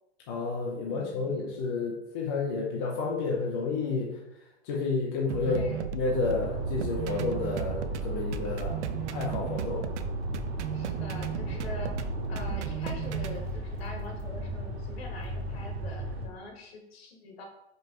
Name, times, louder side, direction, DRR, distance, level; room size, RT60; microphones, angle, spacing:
voice 1, 0.3-4.1 4.6-5.7 5.9-8.7 9.1-9.9, left 4 dB, 20° left, -3 dB, 0.6 m, -30 dB
voice 2, 0.8-1.5 5.4-5.9 10.7-17.4, left 2 dB, 60° left, 2 dB, 1.6 m, -44 dB
sound 1, 5.3-13.4, right 5 dB, 75° right, 0.6 m, -34 dB
sound 2, 6.1-16.3, right 1 dB, 60° right, 1.7 m, -37 dB
5.3 x 4.6 x 4.6 m, 0.86 s
supercardioid pair, 175°, 35 cm